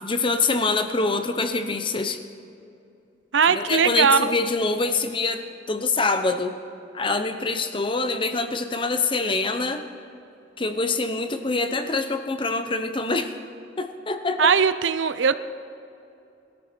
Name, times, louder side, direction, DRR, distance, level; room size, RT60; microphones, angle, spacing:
voice 1, 0.0-2.2 3.5-5.4 5.7-6.5 6.9-9.8 10.6-13.3 13.8-14.5, left 3 dB, 30° left, 8 dB, 0.8 m, -25 dB
voice 2, 3.3-4.3 14.4-15.4, right 6 dB, 85° right, 12 dB, 0.6 m, -19 dB
21.0 x 13.0 x 4.5 m, 2.6 s
head